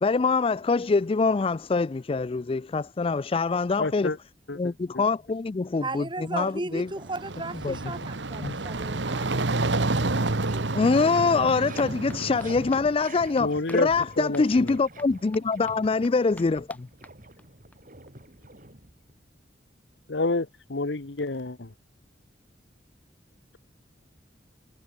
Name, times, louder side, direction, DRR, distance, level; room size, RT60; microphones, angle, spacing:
voice 1, 0.0-4.1 4.5-6.9 7.6-7.8 8.4-8.6 10.7-16.9, left 4 dB, 30° left, 0.4 m, -24 dB
voice 2, 3.8-4.2 4.5-5.0 13.4-13.9 14.2-14.7 20.1-21.7, left 3 dB, 75° left, 1.2 m, -29 dB
voice 3, 5.8-9.5, right 2 dB, 25° right, 2.4 m, -35 dB
sound 1, 6.9-12.9, right 2 dB, 80° right, 1.5 m, -29 dB
sound 2, 9.8-17.8 18.1-18.2 18.4-18.5 18.8-18.9, left 1 dB, 10° left, 4.3 m, -52 dB
sound 3, 10.1-19.2, right 2 dB, 50° right, 5.7 m, -45 dB
head